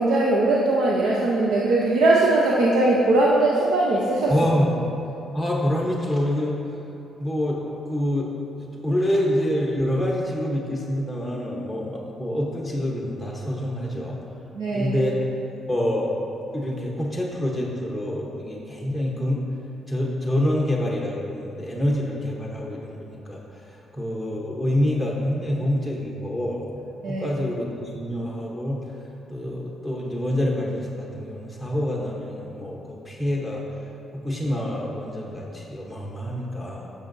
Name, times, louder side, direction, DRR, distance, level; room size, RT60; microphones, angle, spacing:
voice 1, 0.0-4.3 5.3-5.4 14.5-14.9 27.0-27.3, right 2 dB, 75° right, -4 dB, 0.8 m, -20 dB
voice 2, 4.3-4.7 5.3-6.6 7.2-7.6 7.8-8.3 8.6-14.2 14.7-15.3 15.7-16.1 16.5-19.4 19.9-23.4 23.9-26.6 27.1-29.0 29.3-33.6 34.1-36.9, left 1 dB, 5° right, -3 dB, 1.0 m, -26 dB
10.0 x 6.5 x 2.7 m, 2.9 s
cardioid pair, 90°, 0 cm